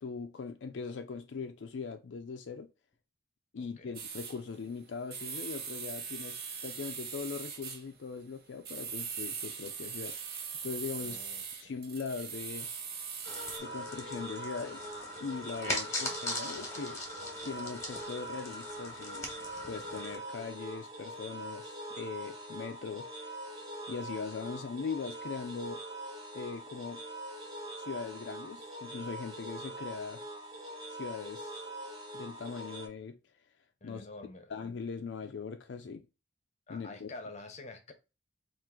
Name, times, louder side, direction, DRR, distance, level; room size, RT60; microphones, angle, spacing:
voice 1, 0.0-2.7 3.5-10.2 10.6-11.2 11.6-12.7 13.6-14.9 15.2-17.0 17.4-19.3 19.7-23.4 23.9-25.8 26.3-27.0 27.8-30.3 30.9-31.7 32.1-33.2 33.8-34.1 34.5-36.1 36.7-37.1, left 5 dB, 70° left, 0.4 m, -40 dB
voice 2, 3.6-4.0 11.0-11.7 15.6-16.2 33.8-34.5 36.7-37.9, left 2 dB, 35° left, 0.7 m, -48 dB
sound 1, 3.9-4.4 5.1-7.8 8.6-13.6, right 6 dB, 55° right, 0.9 m, -40 dB
sound 2, 13.2-20.2, left 1 dB, 15° left, 1.1 m, -40 dB
sound 3, 13.2-32.9, right 1 dB, 20° right, 1.0 m, -43 dB
4.4 x 2.5 x 3.7 m
head